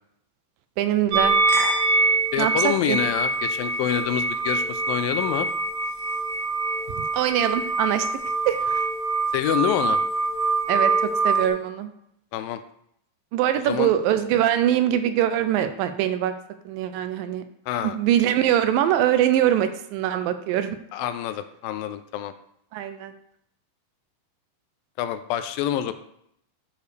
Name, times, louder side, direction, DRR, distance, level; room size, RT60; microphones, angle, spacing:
voice 1, 0.8-1.4 2.4-3.0 7.1-8.1 8.5-8.8 10.7-11.9 13.3-16.3 16.7-17.4 17.8-20.8 22.7-23.1, right 11 dB, 80° right, 9 dB, 2.2 m, -23 dB
sound 1, 1.1-11.5, right 3 dB, 60° right, 2.1 m, -24 dB
voice 2, 2.3-5.5 9.3-10.0 12.3-12.6 13.7-13.9 17.7-18.0 20.9-22.3 25.0-25.9, left 11 dB, 85° left, 10 dB, 2.3 m, -26 dB
11.5 x 4.9 x 3.3 m, 0.73 s
omnidirectional pair, 4.2 m